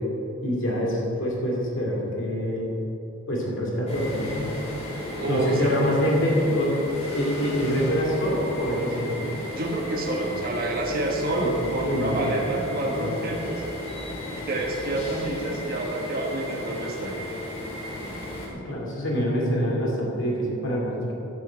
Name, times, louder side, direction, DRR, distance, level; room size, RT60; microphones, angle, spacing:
voice 1, 0.4-2.7 3.3-4.5 5.3-6.7 7.1-9.3 11.4-12.2 12.7-13.1 18.5-21.1, equal, 60° left, -3 dB, 2.5 m, -26 dB
sound 1, 3.9-18.5, left 1 dB, 30° left, 2.3 m, -35 dB
voice 2, 4.9-5.8 9.5-13.6 14.3-17.2, right 2 dB, 45° right, -1 dB, 1.5 m, -28 dB
11.0 x 6.3 x 8.2 m, 2.9 s
head